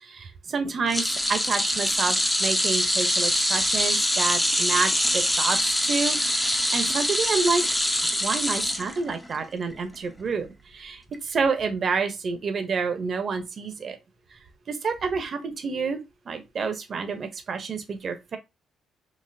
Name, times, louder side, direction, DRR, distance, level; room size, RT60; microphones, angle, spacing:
voice 1, 0.0-7.6 8.2-14.0 14.3-14.4 14.7-18.4, right 5 dB, 50° right, 0.9 m, -29 dB
sound 1, 0.9-9.4 9.7-10.0 11.1-11.2, equal, 5° left, 0.7 m, -24 dB
4.1 x 2.7 x 2.7 m
cardioid pair, 90°, 0 cm